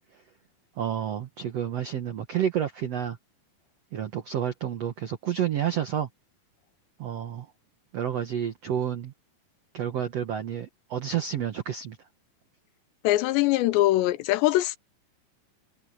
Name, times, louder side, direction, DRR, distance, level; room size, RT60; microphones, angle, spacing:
voice 1, 0.8-3.2 3.9-6.1 7.0-7.5 7.9-9.1 9.7-12.0, right 9 dB, 85° right, 1.4 m, -30 dB
voice 2, 13.0-14.8, left 16 dB, 85° left, 3.0 m, -22 dB
omnidirectional pair, 4.9 m